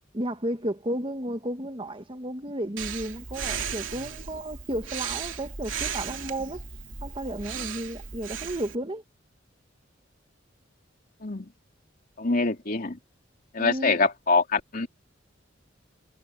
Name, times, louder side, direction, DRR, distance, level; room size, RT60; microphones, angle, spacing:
voice 1, 0.1-6.6 7.0-9.0 13.6-14.0, right 1 dB, 25° right, 1.7 m, -33 dB
Breathing, 2.8-8.8, right 7 dB, 80° right, 2.9 m, -35 dB
voice 2, 12.2-13.0 13.5-14.9, left 4 dB, 50° left, 3.0 m, -24 dB
head